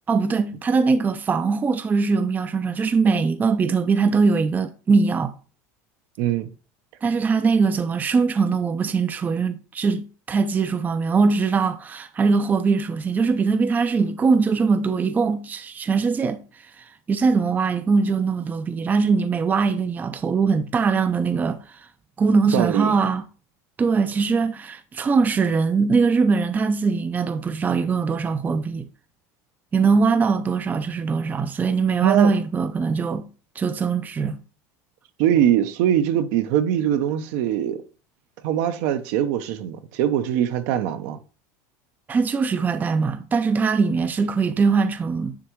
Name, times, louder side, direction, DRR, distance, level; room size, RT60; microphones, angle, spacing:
voice 1, 0.1-5.3 7.0-16.4 16.8-21.9 22.2-23.2 23.8-28.9 29.7-33.3 33.6-34.4 42.1-45.4, right 4 dB, 20° right, 0.4 m, -21 dB
voice 2, 6.2-6.5 22.5-23.0 32.0-32.4 35.2-37.8 38.4-41.2, right 10 dB, 70° right, 0.8 m, -22 dB
9.6 x 3.6 x 3.1 m
supercardioid pair, 120°, 8 cm